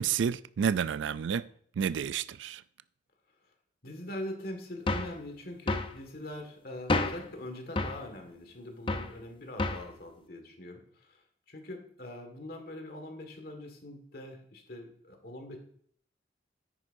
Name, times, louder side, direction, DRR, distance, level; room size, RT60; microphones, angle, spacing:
voice 1, 0.0-1.5 1.8-2.6, right 7 dB, 75° right, 17 dB, 0.3 m, -30 dB
voice 2, 3.8-10.8 11.1-11.2 11.5-15.6, left 1 dB, 50° left, 4 dB, 1.8 m, -42 dB
sound 1, 4.9-5.2 5.7-5.9 6.9-7.3 7.8-8.0 8.9-9.1 9.6-9.9, left 2 dB, 25° left, 0.6 m, -30 dB
9.8 x 9.6 x 2.6 m, 0.64 s
head